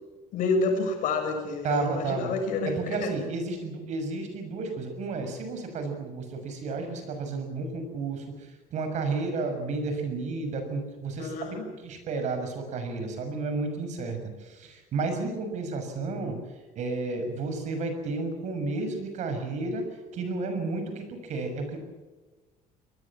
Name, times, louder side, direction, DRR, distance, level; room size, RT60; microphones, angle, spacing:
voice 1, 0.3-3.1 11.2-11.7, left 3 dB, 70° left, 5 dB, 6.8 m, -28 dB
voice 2, 1.6-2.3 2.6-8.2 8.7-11.6 11.8-16.4 16.7-19.8 20.1-21.8, right 3 dB, 55° right, 7 dB, 6.5 m, -32 dB
25.0 x 20.0 x 7.4 m, 1.2 s
cardioid pair, 140°, 14 cm